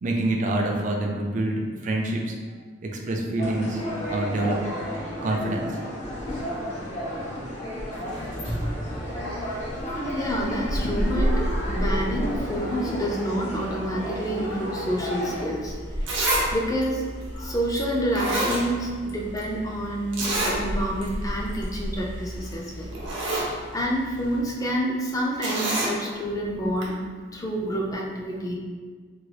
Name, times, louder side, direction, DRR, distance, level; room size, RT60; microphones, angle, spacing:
voice 1, 0.0-2.4 3.1-3.8 4.1-4.6 5.2-5.7, right 2 dB, 40° right, 0 dB, 0.4 m, -26 dB
sound 1, 3.4-15.4, equal, 40° left, 0.9 m, -33 dB
sound 2, 6.0-24.4, equal, 85° left, 1.2 m, -33 dB
voice 2, 10.1-15.8 16.1-17.0 17.3-23.0 23.7-27.0 27.3-28.6, equal, 20° left, -2 dB, 0.4 m, -28 dB
Zipper (clothing), 16.1-16.5 16.8-16.9 17.8-17.9 18.1-19.1 19.4-19.5 20.1-20.6 21.0-21.1 21.5-21.7 22.5-22.6 22.9-23.5 25.4-25.9 26.8-26.9, right 1 dB, 85° right, 0.8 m, -26 dB
3.6 x 2.0 x 3.2 m, 1.5 s
head